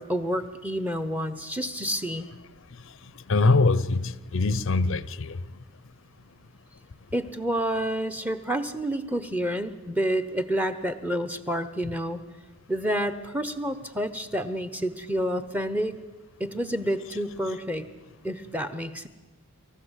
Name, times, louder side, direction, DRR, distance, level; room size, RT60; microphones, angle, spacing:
voice 1, 0.0-2.3 7.1-12.2 12.7-15.9 16.4-17.9 18.2-19.1, equal, 5° right, 11 dB, 1.0 m, -29 dB
voice 2, 3.3-5.4, left 3 dB, 60° left, 17 dB, 0.6 m, -23 dB
26.5 x 14.5 x 8.2 m, 1.2 s
head